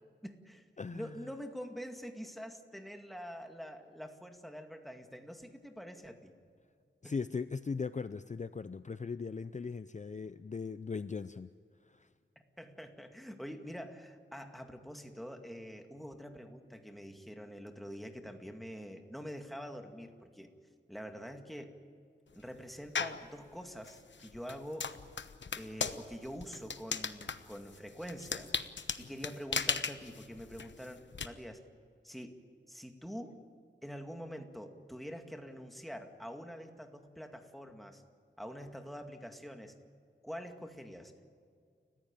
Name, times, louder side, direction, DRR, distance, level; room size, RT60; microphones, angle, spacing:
voice 1, 0.2-0.6 0.9-6.3 7.0-7.2 12.6-20.5 20.9-21.8 22.3-24.9 25.6-28.5 29.0-31.6 32.0-32.4 32.7-33.4 33.8-38.0 38.4-39.7 40.2-41.1, equal, ahead, 4 dB, 2.1 m, -45 dB
voice 2, 0.8-1.2 7.0-11.5 11.9-12.1, left 5 dB, 40° left, 13 dB, 0.5 m, -39 dB
sound 1, 22.9-23.3 23.8-31.3, left 5 dB, 75° left, 1.0 m, -37 dB
29.5 x 15.0 x 9.0 m, 2.1 s
wide cardioid pair, 85°, 19 cm